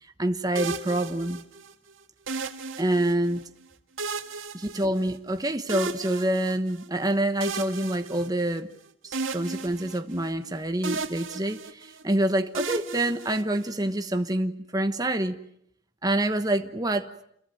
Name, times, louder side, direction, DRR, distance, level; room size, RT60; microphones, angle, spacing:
voice 1, 0.0-1.4 2.8-3.4 4.5-8.7 9.0-15.4 16.0-17.1, right 1 dB, 20° right, 1.2 m, -27 dB
sound 1, 0.6-1.7 2.3-3.4 4.0-5.3 5.7-6.9 7.4-8.8 9.1-10.5 10.8-12.0 12.6-13.9, right 3 dB, 85° right, 2.1 m, -35 dB
28.5 x 22.0 x 9.1 m
head